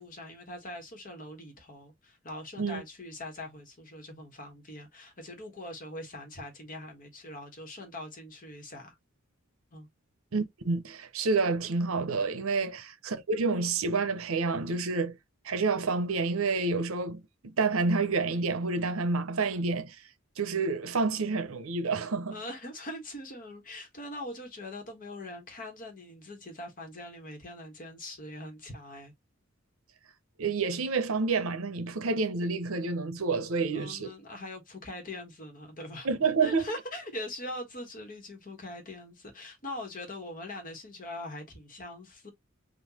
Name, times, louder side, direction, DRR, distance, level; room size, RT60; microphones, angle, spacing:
voice 1, 0.0-8.9 9.7-9.9 12.6-12.8 22.3-29.1 33.7-36.1 36.4-42.3, left 1 dB, 40° left, 1.3 m, -42 dB
voice 2, 10.3-15.2 15.4-20.0 20.4-22.3 30.4-34.1 36.0-36.6, right 4 dB, 85° right, 0.7 m, -29 dB
3.9 x 2.5 x 2.8 m
head